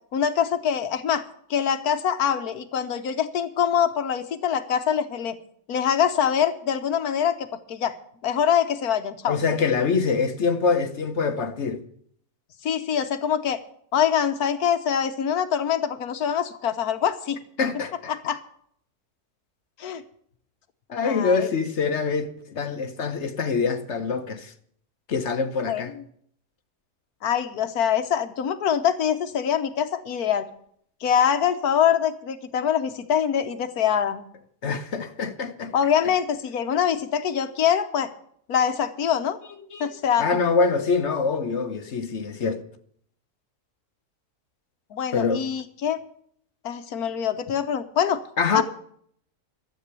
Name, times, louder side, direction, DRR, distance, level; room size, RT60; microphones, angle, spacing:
voice 1, 0.1-1.2 1.5-5.4 5.7-8.0 8.2-9.4 12.6-13.6 13.9-17.4 18.1-18.4 19.8-20.0 21.0-21.5 25.7-26.0 27.2-30.5 31.0-34.2 35.7-38.1 38.5-39.4 39.8-40.3 44.9-46.0 46.6-48.2 48.5-48.6, left 8 dB, 75° left, 1.4 m, -24 dB
voice 2, 9.3-11.8 17.6-18.1 20.9-24.5 25.1-25.9 34.6-35.7 39.7-39.9 40.2-42.6 45.1-45.4 48.4-48.6, left 5 dB, 50° left, 1.2 m, -25 dB
13.0 x 7.8 x 8.3 m
omnidirectional pair, 1.6 m